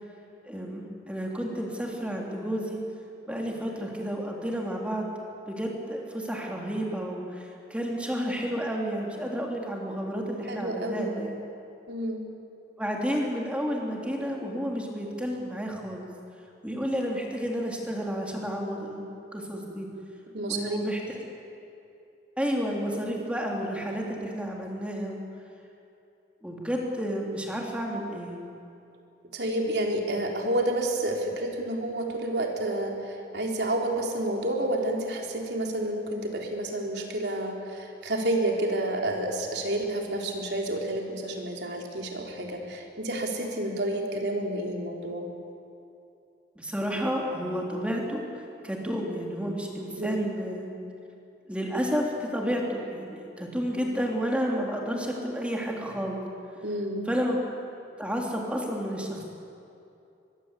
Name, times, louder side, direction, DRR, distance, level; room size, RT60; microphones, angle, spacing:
voice 1, 0.4-2.8 3.3-5.1 5.5-11.3 12.8-16.1 16.6-19.1 19.3-19.9 20.5-21.2 22.4-25.2 26.4-28.4 46.6-48.2 48.6-50.7 51.5-56.2 57.1-57.4 58.0-59.2, equal, 5° right, -1 dB, 3.4 m, -31 dB
voice 2, 10.5-11.1 11.9-12.2 20.3-20.8 23.5-23.6 29.3-33.0 33.3-45.3 50.0-50.3 56.6-57.1, right 1 dB, 70° right, 1 dB, 3.8 m, -29 dB
24.0 x 22.0 x 8.4 m, 2.7 s
head